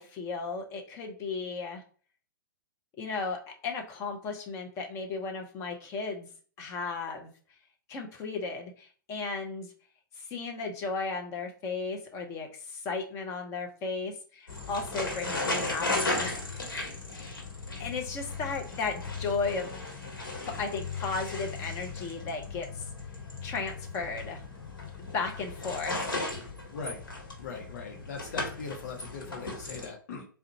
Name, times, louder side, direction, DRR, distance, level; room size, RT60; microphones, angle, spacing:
voice 1, 0.0-1.8 3.0-6.3 6.6-7.3 7.9-9.7 10.2-16.8 17.8-19.7 20.4-22.8 23.4-24.4 25.1-26.0, left 4 dB, 25° left, 3 dB, 0.7 m, -35 dB
Bicycle Riding Circles Gravel Stops, 14.5-29.9, left 2 dB, 75° left, 1.1 m, -36 dB
voice 2, 26.7-27.0 27.4-30.3, left 5 dB, 50° left, 1 dB, 0.9 m, -40 dB
3.7 x 2.2 x 2.7 m, 0.41 s
figure-of-eight pair, 110°, 11 cm